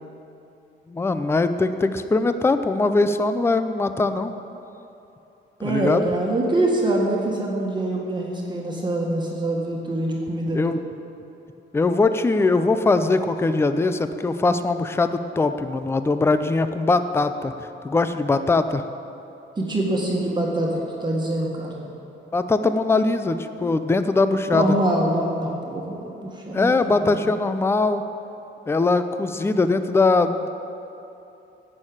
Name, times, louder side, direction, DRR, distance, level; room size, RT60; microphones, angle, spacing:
voice 1, 0.9-4.3 5.6-6.0 10.5-10.8 11.7-17.5 17.8-18.8 22.3-24.8 26.5-28.0 28.7-30.5, left 3 dB, 10° left, 10 dB, 0.5 m, -21 dB
voice 2, 5.6-10.7 19.6-21.9 24.5-26.7 27.0-27.3, right 1 dB, 20° right, -2 dB, 1.7 m, -24 dB
16.0 x 6.5 x 8.8 m, 2.9 s
cardioid pair, 160°, 20 cm